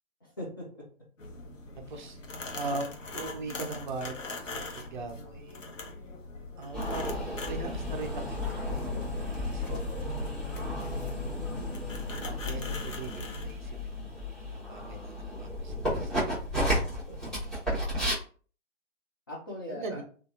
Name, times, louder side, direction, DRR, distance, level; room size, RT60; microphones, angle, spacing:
voice 1, 0.2-0.9 9.7-11.0 17.1-18.1 19.3-20.0, equal, 20° left, -5 dB, 0.3 m, -43 dB
sound 1, 1.2-13.5, left 3 dB, 80° left, 0.9 m, -42 dB
voice 2, 1.8-2.2 2.5-2.9 3.1-5.6 6.6-7.0 7.4-9.6 12.2-16.3 19.7-20.0, right 3 dB, 40° right, 5 dB, 0.5 m, -40 dB
sound 2, 6.7-18.1, left 1 dB, ahead, 0.8 m, -33 dB
sound 3, 7.7-13.0, left 1 dB, 45° left, 1.1 m, -43 dB
2.7 x 2.4 x 2.5 m, 0.41 s
figure-of-eight pair, 130°, 37 cm